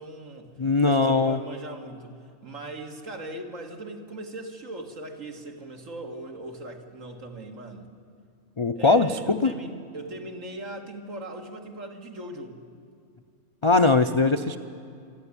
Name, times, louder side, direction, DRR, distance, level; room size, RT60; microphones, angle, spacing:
voice 1, 0.0-2.1 2.4-7.9 8.8-12.6, right 2 dB, 65° right, 3 dB, 2.3 m, -39 dB
voice 2, 0.6-1.4 8.6-9.5 13.6-14.6, left 3 dB, 50° left, 8 dB, 0.3 m, -21 dB
27.5 x 11.0 x 9.8 m, 2.4 s
omnidirectional pair, 1.4 m